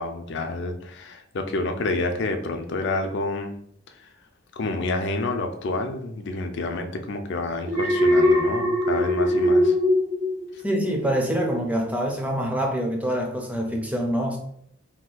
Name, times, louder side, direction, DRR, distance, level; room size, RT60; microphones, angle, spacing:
voice 1, 0.0-3.5 4.5-9.7, left 2 dB, 55° left, 0.4 m, -28 dB
Alarm, 7.7-11.0 11.4-11.7, left 1 dB, 65° right, 0.8 m, -21 dB
voice 2, 10.6-14.4, equal, 5° right, 0.4 m, -25 dB
2.8 x 2.2 x 3.9 m
head